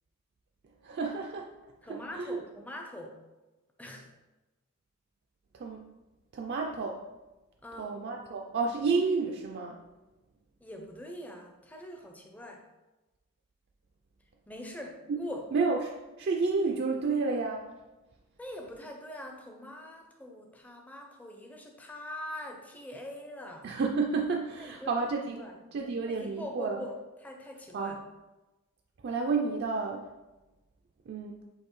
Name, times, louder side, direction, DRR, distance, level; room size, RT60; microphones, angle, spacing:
voice 1, 0.8-1.5 1.8-2.4 5.5-5.8 6.3-7.0 7.8-9.8 15.1-15.2 15.5-17.7 23.6-25.4 25.7-26.8 27.7-28.0 29.0-30.1 31.1-31.5, right 4 dB, 55° right, 1 dB, 0.3 m, -31 dB
voice 2, 1.8-3.2 3.8-4.1 7.6-8.0 10.6-12.7 14.5-15.5 18.4-23.7 24.6-25.0 25.4-25.6 26.1-27.0 27.2-28.0, left 1 dB, 5° left, 2 dB, 0.4 m, -43 dB
6.5 x 2.7 x 3.1 m, 1.1 s
head